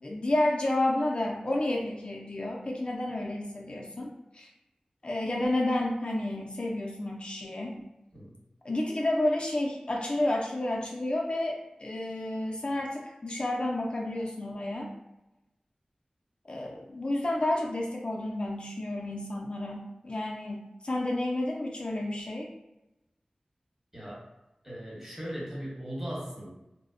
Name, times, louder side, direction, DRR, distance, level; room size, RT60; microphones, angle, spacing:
voice 1, 0.0-4.5 5.0-7.7 8.6-14.9 16.5-22.5, left 1 dB, 45° left, -1 dB, 0.3 m, -30 dB
voice 2, 23.9-24.2 24.6-26.5, equal, 15° right, -5 dB, 1.0 m, -38 dB
2.5 x 2.0 x 2.5 m, 0.96 s
wide cardioid pair, 60°, 2 cm